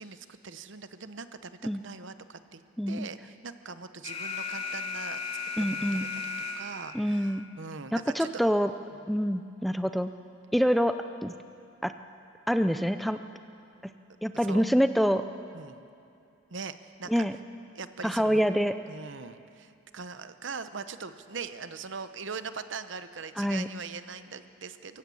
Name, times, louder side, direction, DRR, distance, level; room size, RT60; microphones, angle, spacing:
voice 1, 0.0-2.6 2.9-5.2 5.6-6.2 6.6-8.4 14.3-14.6 15.5-15.8 16.5-17.3 17.7-18.4 18.9-25.0, right 5 dB, 65° right, 11 dB, 0.9 m, -41 dB
Alarm, 4.0-7.0, left 4 dB, 30° left, 2.3 m, -35 dB
voice 2, 5.6-6.1 6.9-7.5 7.9-8.7 9.1-10.1 10.5-10.9 11.2-11.3 11.8-11.9 12.5-13.2 14.2-15.2 17.1-17.4 18.0-18.7 23.4-23.7, equal, ahead, 9 dB, 0.4 m, -26 dB
22.5 x 15.5 x 8.5 m, 2.6 s
head